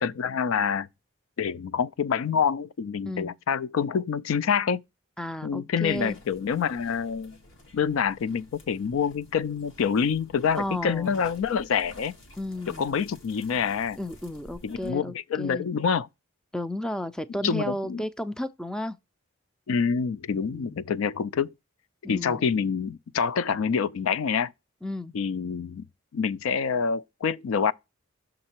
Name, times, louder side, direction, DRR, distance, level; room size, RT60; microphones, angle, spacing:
voice 1, 0.0-0.9 1.4-4.8 5.4-7.4 7.7-12.1 12.8-14.0 14.6-16.1 17.4-18.0 19.7-21.5 22.0-24.5 25.1-25.8 26.1-27.7, left 6 dB, 80° left, 0.4 m, -26 dB
voice 2, 5.2-6.2 10.6-11.2 12.4-13.0 14.0-15.7 16.5-19.0 20.5-20.8 22.0-22.5 24.8-25.2, left 1 dB, 5° left, 0.3 m, -33 dB
sound 1, 5.9-14.9, left 1 dB, 65° left, 1.7 m, -51 dB
6.5 x 3.8 x 4.4 m
head